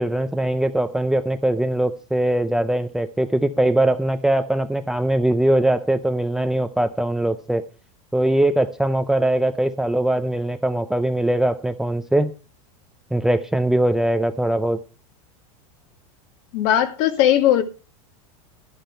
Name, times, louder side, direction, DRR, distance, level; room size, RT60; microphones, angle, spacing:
voice 1, 0.0-7.6 8.1-12.3 13.1-14.8, right 1 dB, 5° right, 0.5 m, -21 dB
voice 2, 16.5-17.6, left 11 dB, 50° left, 1.8 m, -18 dB
11.5 x 10.5 x 4.4 m
supercardioid pair, 150°, 18 cm